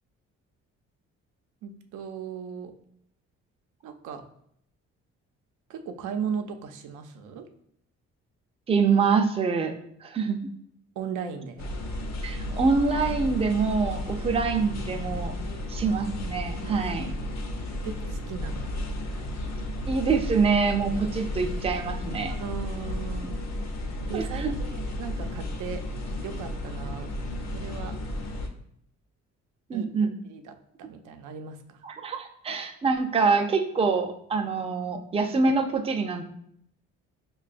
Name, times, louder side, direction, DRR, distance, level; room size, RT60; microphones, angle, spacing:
voice 1, 1.6-2.7 3.8-4.3 5.7-7.5 11.0-11.7 14.1-14.4 15.5-15.7 16.6-16.9 17.8-18.7 19.2-19.5 22.3-23.4 24.1-25.8 26.2-28.0 29.7-29.9 30.2-31.8, right 7 dB, 80° right, 6 dB, 0.6 m, -37 dB
voice 2, 8.7-9.7 10.0-10.4 12.2-15.3 15.7-17.1 19.9-22.3 24.1-24.5 29.7-30.1 31.8-36.2, right 4 dB, 20° right, 5 dB, 0.4 m, -25 dB
sound 1, 11.6-28.5, left 1 dB, 60° left, 0.7 m, -33 dB
5.6 x 2.3 x 2.4 m, 0.70 s
cardioid pair, 90°, 30 cm